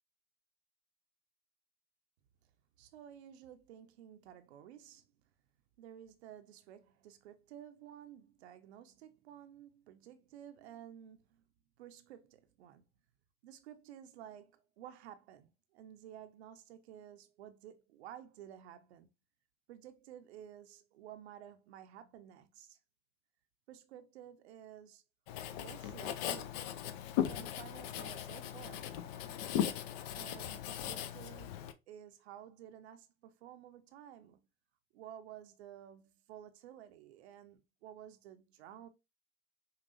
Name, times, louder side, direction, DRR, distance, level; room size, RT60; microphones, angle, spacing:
voice 1, 2.8-5.1 5.8-11.4 11.8-12.8 13.4-19.1 19.7-22.8 23.7-25.0 25.6-26.8 27.2-28.9 30.1-31.6 31.9-34.4 34.9-38.9, right 10 dB, 70° right, 0.6 m, -53 dB
Writing, 25.3-31.7, left 10 dB, 55° left, 0.5 m, -38 dB
5.5 x 2.4 x 2.5 m
hypercardioid pair, 80°, 34 cm